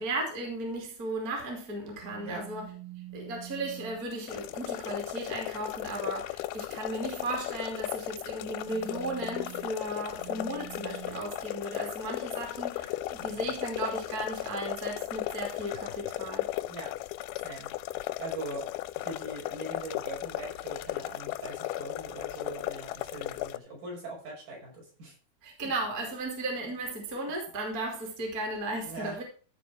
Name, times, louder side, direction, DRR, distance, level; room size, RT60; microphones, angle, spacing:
voice 1, 0.0-2.7 3.1-16.5 25.4-29.2, right 2 dB, 25° right, 2.8 m, -35 dB
sound 1, 2.0-4.1 7.1-7.5 8.4-11.2, right 17 dB, 80° right, 1.5 m, -46 dB
sound 2, 4.3-23.6, left 16 dB, 90° left, 2.6 m, -36 dB
voice 2, 16.7-17.0 17.4-17.7 18.2-25.1 28.8-29.2, right 2 dB, 60° right, 7.5 m, -41 dB
15.0 x 5.0 x 5.9 m
omnidirectional pair, 4.3 m